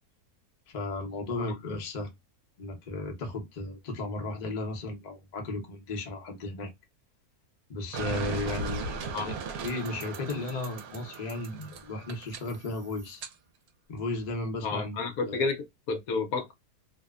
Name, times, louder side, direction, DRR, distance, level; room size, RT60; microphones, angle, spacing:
voice 1, 0.7-2.1 2.6-6.7 7.7-13.2 13.9-15.0 15.3-15.5, left 2 dB, 40° left, 0.6 m, -35 dB
sound 1, 7.9-13.3, right 4 dB, 70° right, 1.0 m, -37 dB
voice 2, 14.6-16.5, left 4 dB, 70° left, 1.0 m, -31 dB
2.7 x 2.1 x 2.3 m
omnidirectional pair, 1.7 m